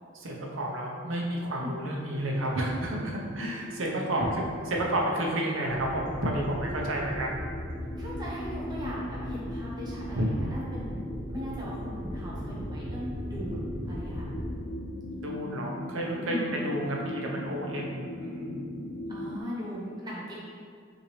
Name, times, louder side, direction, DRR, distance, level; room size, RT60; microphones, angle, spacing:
voice 1, 0.1-4.3 4.7-7.5 10.1-10.3 15.1-18.6, right 1 dB, 80° right, -1 dB, 0.8 m, -31 dB
sound 1, 2.0-19.4, left 1 dB, 40° left, 0.4 m, -40 dB
voice 2, 3.1-3.5 4.1-4.3 8.0-14.3 16.3-16.5 19.1-20.3, equal, 20° right, -7 dB, 0.7 m, -39 dB
sound 2, 5.7-14.6, equal, 25° left, 1.0 m, -38 dB
5.7 x 2.7 x 3.2 m, 2.1 s
head